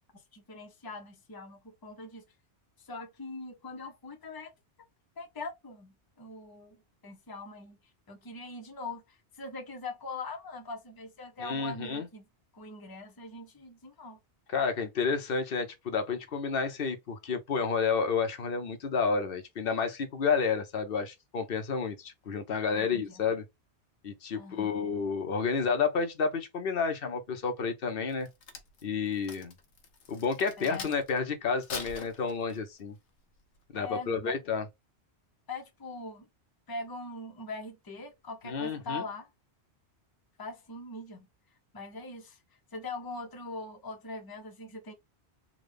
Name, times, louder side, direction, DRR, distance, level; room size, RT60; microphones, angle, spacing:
voice 1, 0.3-2.2 2.8-4.5 5.2-7.8 8.1-12.2 12.5-14.2 22.7-23.2 24.3-24.8 30.6-31.0 33.7-34.4 35.5-36.3 36.7-39.3 40.4-41.3 41.7-42.4 42.7-44.9, left 3 dB, 20° left, 0.7 m, -42 dB
voice 2, 11.4-12.1 14.5-23.4 24.0-28.3 28.8-29.5 30.1-32.9 33.7-34.6 38.4-39.0, left 5 dB, 60° left, 0.9 m, -30 dB
Crack, 28.1-31.2 31.6-32.8 33.3-33.6, left 5 dB, 90° left, 1.2 m, -43 dB
3.7 x 2.3 x 3.3 m
omnidirectional pair, 1.2 m